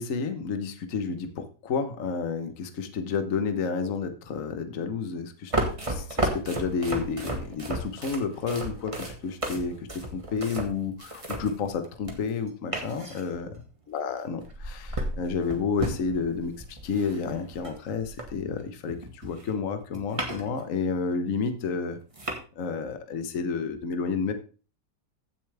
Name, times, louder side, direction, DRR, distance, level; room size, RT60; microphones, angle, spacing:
voice 1, 0.0-13.5 13.9-22.0 22.6-24.3, left 5 dB, 55° left, 8 dB, 1.4 m, -30 dB
sound 1, 5.5-12.4 12.7-13.7 14.4-18.6 18.9-20.6 21.0-21.1 21.7-21.8 22.1-22.4, right 1 dB, 20° right, 1.7 m, -33 dB
15.0 x 7.1 x 3.4 m, 0.37 s
omnidirectional pair, 1.8 m